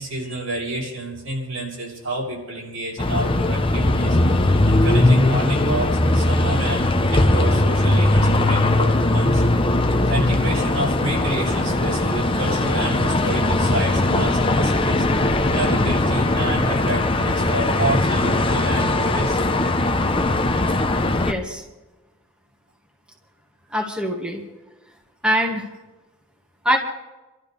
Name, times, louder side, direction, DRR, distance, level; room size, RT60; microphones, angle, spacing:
voice 1, 0.0-9.4 10.1-15.0 15.5-19.4, right 1 dB, 90° right, -4 dB, 6.8 m, -29 dB
sound 1, 3.0-21.3, left 2 dB, 25° left, 0.8 m, -19 dB
voice 2, 21.2-21.6 23.7-24.4 25.2-25.7 26.6-26.8, equal, 5° right, -1 dB, 1.9 m, -22 dB
28.5 x 13.0 x 3.4 m, 1.1 s
head